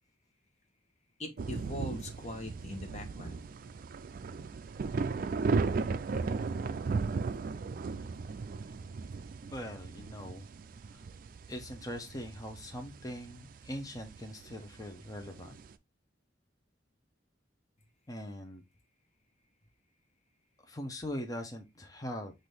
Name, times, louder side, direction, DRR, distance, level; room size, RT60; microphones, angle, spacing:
voice 1, 1.2-3.5, left 1 dB, 40° left, 1.1 m, -41 dB
sound 1, 1.4-15.7, right 4 dB, 50° right, 0.3 m, -36 dB
voice 2, 9.5-10.5 10.9-11.1 11.5-15.6 18.1-18.6 20.6-22.3, equal, 20° left, 0.7 m, -41 dB
5.9 x 2.6 x 3.3 m
head